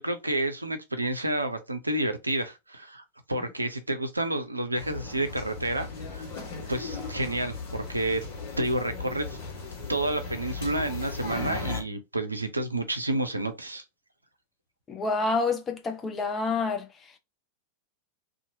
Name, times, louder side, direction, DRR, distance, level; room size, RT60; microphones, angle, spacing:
voice 1, 0.0-6.3 6.7-8.2 8.6-9.4 9.9-13.8, right 1 dB, 85° right, 0.5 m, -30 dB
sound 1, 4.7-11.8, left 4 dB, 55° left, 1.2 m, -37 dB
voice 2, 14.9-16.9, left 3 dB, 20° left, 0.6 m, -28 dB
2.7 x 2.4 x 2.7 m
figure-of-eight pair, 90°, 0 cm